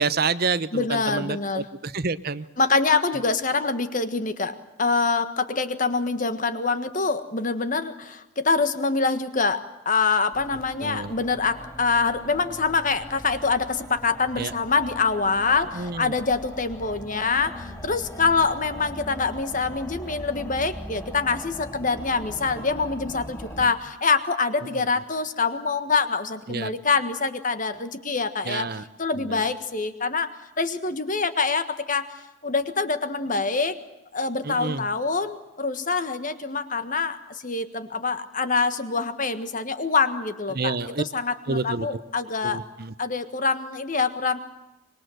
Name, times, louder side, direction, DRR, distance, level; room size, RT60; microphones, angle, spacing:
voice 1, 0.0-2.4 10.8-11.1 14.4-14.5 15.7-16.1 23.6-23.7 24.8-24.9 26.5-26.7 28.4-28.8 29.2-29.4 34.4-34.9 40.5-41.0 41.5-42.0 42.4-42.9, right 4 dB, 45° right, 14 dB, 0.8 m, -28 dB
voice 2, 0.7-1.7 2.6-28.7 29.0-32.1 32.4-33.8 34.1-42.6 43.0-44.4, left 4 dB, 40° left, 11 dB, 1.6 m, -25 dB
sound 1, 10.3-23.7, equal, 10° left, 4.0 m, -40 dB
25.0 x 22.0 x 7.8 m, 0.97 s
head